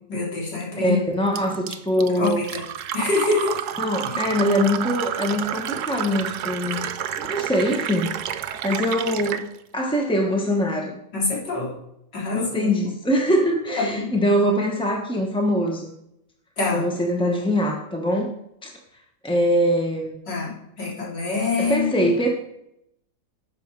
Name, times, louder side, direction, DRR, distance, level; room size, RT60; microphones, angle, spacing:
voice 1, 0.1-1.0 2.0-2.6 2.9-3.6 4.0-4.2 11.1-11.7 12.1-12.7 13.8-14.1 16.6-16.8 20.3-22.1, left 3 dB, 75° left, -5 dB, 3.9 m, -25 dB
voice 2, 0.8-2.5 3.8-6.8 7.2-8.1 8.6-9.4 9.7-10.9 12.3-15.9 16.7-18.3 18.6-18.7 19.2-20.1 21.6-22.3, equal, 5° left, 1 dB, 0.6 m, -23 dB
Fill (with liquid), 1.4-9.5, right 10 dB, 70° right, 1.1 m, -30 dB
12.5 x 7.9 x 4.7 m, 0.80 s
omnidirectional pair, 1.9 m